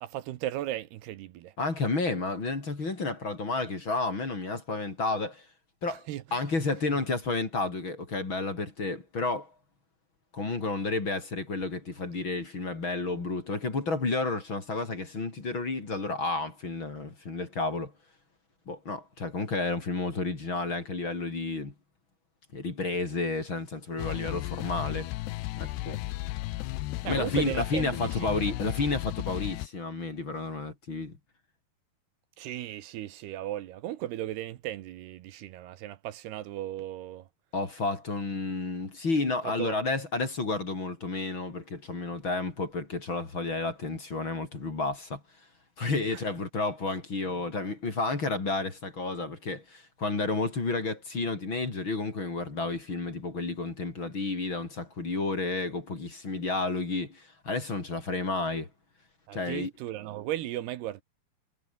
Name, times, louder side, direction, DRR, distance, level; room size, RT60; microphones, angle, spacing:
voice 1, 0.0-1.5 5.9-6.2 27.0-28.5 32.4-37.3 39.4-39.8 46.1-46.2 59.3-61.0, right 13 dB, 75° right, 3.1 m, -36 dB
voice 2, 1.6-5.5 5.8-9.5 10.3-17.9 18.7-21.7 22.5-25.1 25.6-26.0 27.0-31.2 37.5-45.2 45.8-58.7 59.3-59.7, left 3 dB, 30° left, 4.3 m, -31 dB
sound 1, 24.0-29.7, left 18 dB, 90° left, 2.9 m, -34 dB
omnidirectional pair, 4.8 m